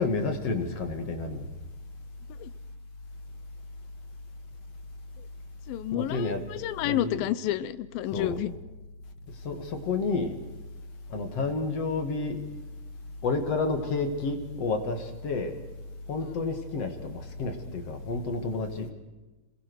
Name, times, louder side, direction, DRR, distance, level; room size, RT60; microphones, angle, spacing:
voice 1, 0.0-1.5 5.9-6.4 6.8-7.3 8.1-8.4 9.4-10.3 11.1-12.4 13.2-15.5 16.1-18.9, left 3 dB, 45° left, 7 dB, 2.8 m, -30 dB
voice 2, 5.7-8.5, left 13 dB, 75° left, 15 dB, 2.6 m, -30 dB
27.5 x 21.0 x 6.3 m, 1.1 s
omnidirectional pair, 4.4 m